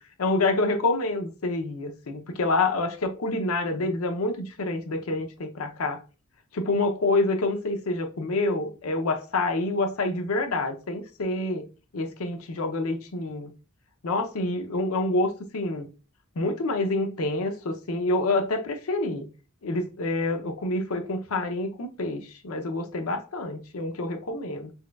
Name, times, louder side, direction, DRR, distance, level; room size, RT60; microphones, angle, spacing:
voice 1, 0.2-6.0 6.5-11.6 11.9-13.5 14.0-15.9 16.4-19.3 19.6-24.7, left 2 dB, 90° left, 0.6 m, -27 dB
4.2 x 2.3 x 2.2 m
head